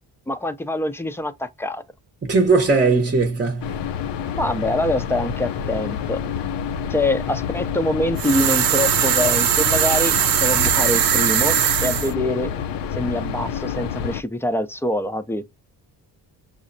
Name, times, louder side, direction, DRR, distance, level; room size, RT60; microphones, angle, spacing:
voice 1, 0.3-1.8 4.3-6.2 6.9-12.5 13.0-15.4, left 1 dB, 5° left, 0.5 m, -24 dB
voice 2, 2.2-3.8, right 3 dB, 25° right, 0.8 m, -18 dB
sound 1, 3.6-14.2, left 7 dB, 75° left, 0.6 m, -28 dB
sound 2, 8.2-12.1, right 10 dB, 55° right, 0.6 m, -20 dB
6.2 x 2.1 x 2.5 m
cardioid pair, 70°, 43 cm